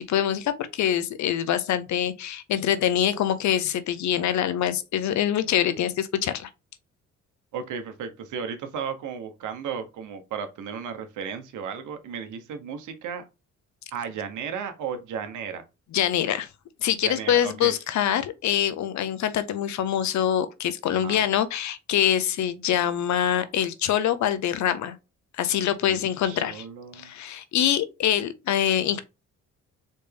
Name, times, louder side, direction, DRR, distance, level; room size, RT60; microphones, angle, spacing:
voice 1, 0.1-6.5 15.9-16.5 16.8-24.9 25.4-26.6 26.9-29.0, left 10 dB, 70° left, 0.8 m, -24 dB
voice 2, 7.5-13.3 13.9-15.6 17.0-17.7 21.0-21.2 25.8-27.1, right 7 dB, 80° right, 1.0 m, -34 dB
4.2 x 3.4 x 3.4 m
cardioid pair, 90°, 30 cm